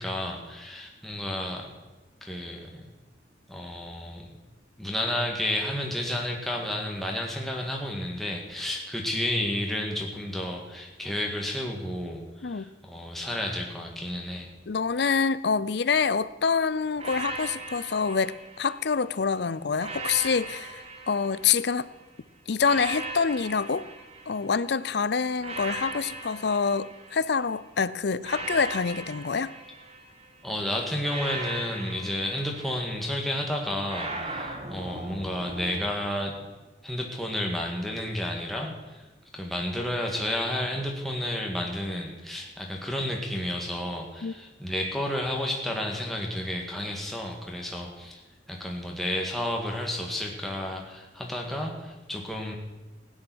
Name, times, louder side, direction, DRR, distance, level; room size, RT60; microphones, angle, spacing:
voice 1, 0.0-1.7 2.2-2.9 3.5-4.3 4.8-14.5 30.4-36.4 36.8-39.0 39.3-48.2 48.5-52.6, left 1 dB, ahead, 0 dB, 1.8 m, -31 dB
voice 2, 14.7-21.9 22.5-23.8 24.3-29.5 44.2-44.3, left 5 dB, 60° left, 17 dB, 0.5 m, -26 dB
sound 1, 17.0-19.1 19.8-21.9 22.6-24.8 25.4-27.6 28.2-30.4 31.0-33.2 33.9-35.9, right 2 dB, 30° right, 1.5 m, -38 dB
16.0 x 10.0 x 6.2 m, 1.2 s
head